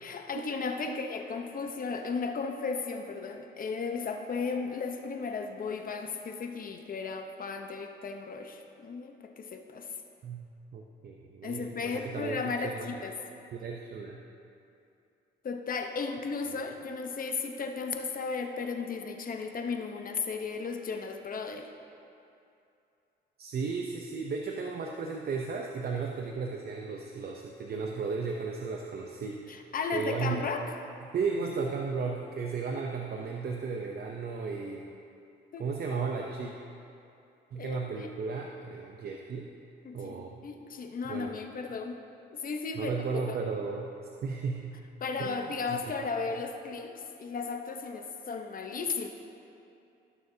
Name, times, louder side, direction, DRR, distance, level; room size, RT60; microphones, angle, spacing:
voice 1, 0.0-9.9 11.4-13.2 15.4-21.7 29.5-30.8 35.5-35.7 37.5-38.1 39.8-42.0 42.3-42.9 43.3-43.4 45.0-49.1, left 4 dB, 45° left, 5 dB, 0.9 m, -35 dB
voice 2, 10.7-13.0 13.5-14.2 23.4-29.5 29.9-30.4 31.1-34.8 35.6-36.5 37.5-39.5 39.9-40.4 41.0-41.4 42.8-43.9 44.2-44.8 45.2-45.4 45.7-45.8, right 5 dB, 50° right, 1 dB, 0.7 m, -34 dB
18.0 x 6.6 x 2.8 m, 2.7 s
cardioid pair, 90°, 20 cm